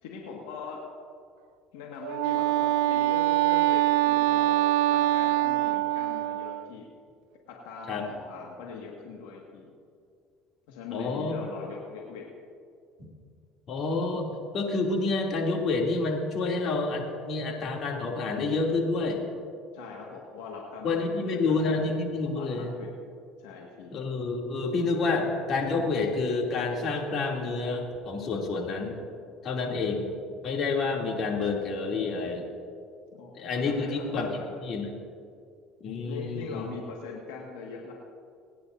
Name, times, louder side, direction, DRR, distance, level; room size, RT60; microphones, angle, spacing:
voice 1, 0.0-0.8 1.7-6.9 7.5-9.7 10.7-12.3 19.7-21.9 22.2-22.9 23.4-23.9 33.1-34.6 36.0-37.9, left 5 dB, 85° left, -1 dB, 1.8 m, -41 dB
Wind instrument woodwind instrument, 2.0-6.7, right 16 dB, 80° right, 0.4 m, -24 dB
voice 2, 10.9-11.3 13.7-19.3 20.8-22.7 23.9-29.0 29.4-30.1 30.4-32.5 33.3-34.3 34.6-34.9 35.8-36.7, left 3 dB, 50° left, -1 dB, 2.8 m, -28 dB
29.5 x 10.0 x 2.7 m, 2.2 s
supercardioid pair, 90°, 0 cm